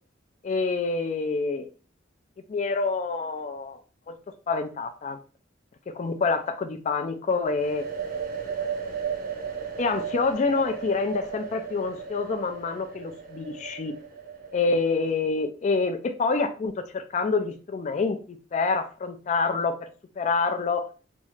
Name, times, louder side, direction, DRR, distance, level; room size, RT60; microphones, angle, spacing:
voice 1, 0.4-1.7 2.5-3.8 4.1-4.2 4.5-5.2 5.9-7.9 9.8-13.9 14.5-19.9 20.2-20.9, left 4 dB, 40° left, 8 dB, 0.3 m, -27 dB
sound 1, 7.4-15.1, right 6 dB, 50° right, 0.6 m, -35 dB
3.0 x 2.3 x 3.1 m, 0.37 s
head